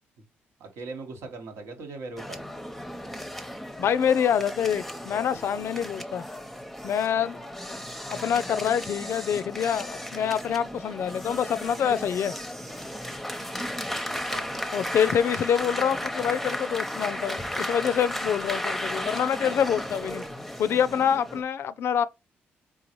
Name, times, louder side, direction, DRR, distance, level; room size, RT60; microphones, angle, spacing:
voice 1, 0.6-2.4 14.1-14.5, right 3 dB, 80° right, 1.2 m, -39 dB
sound 1, 2.2-21.4, left 1 dB, 5° left, 0.7 m, -35 dB
voice 2, 3.8-6.2 6.8-7.4 8.1-12.3 14.7-20.2 20.6-22.0, left 8 dB, 65° left, 0.4 m, -26 dB
3.9 x 3.8 x 3.0 m
supercardioid pair, 60°, 5 cm